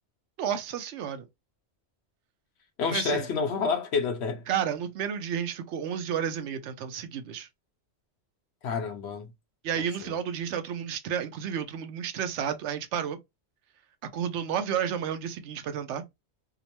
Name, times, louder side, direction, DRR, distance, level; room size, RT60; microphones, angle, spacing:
voice 1, 0.4-1.3 2.9-3.3 4.5-7.5 9.6-13.2 14.1-16.0, right 8 dB, 90° right, 0.9 m, -31 dB
voice 2, 2.8-4.4 8.6-9.3 9.8-10.2, left 5 dB, 70° left, 1.0 m, -29 dB
2.9 x 2.0 x 2.8 m
omnidirectional pair, 1.2 m